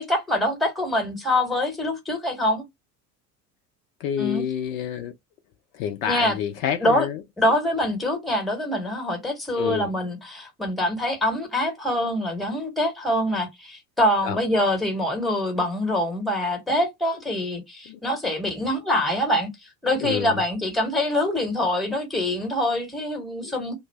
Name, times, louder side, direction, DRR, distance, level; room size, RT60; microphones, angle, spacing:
voice 1, 0.0-2.7 4.2-4.5 6.1-6.4 6.8-7.1 7.4-19.5 19.8-23.7, left 1 dB, ahead, 1.0 m, -24 dB
voice 2, 4.0-5.1 5.7-7.2 9.6-9.9 14.2-14.4 17.9-18.0 20.0-20.3 23.4-23.5, left 9 dB, 55° left, 0.6 m, -28 dB
2.5 x 2.0 x 3.3 m
figure-of-eight pair, 70°, 50 cm